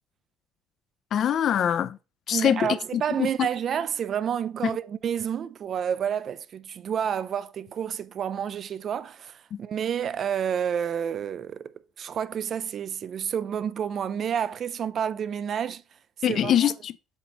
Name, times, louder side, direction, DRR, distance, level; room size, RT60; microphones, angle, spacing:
voice 1, 1.1-2.0 2.3-3.5 4.6-4.7 9.5-9.6 16.2-16.9, left 10 dB, 45° left, 0.4 m, -24 dB
voice 2, 2.3-15.8 16.3-16.5, right 8 dB, 40° right, 0.4 m, -29 dB
7.9 x 3.0 x 4.5 m
cardioid pair, 145°, 0 cm